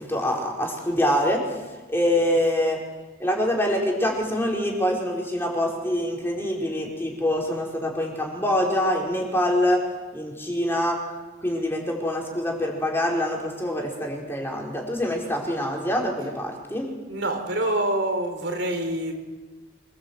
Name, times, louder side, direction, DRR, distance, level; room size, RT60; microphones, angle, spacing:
voice 1, 0.0-1.4 1.9-2.8 3.2-9.8 10.1-11.0 11.4-16.9, left 1 dB, 10° left, -1 dB, 4.6 m, -25 dB
voice 2, 17.1-19.1, right 1 dB, 60° right, 4 dB, 4.5 m, -26 dB
26.0 x 20.0 x 8.1 m, 1.2 s
head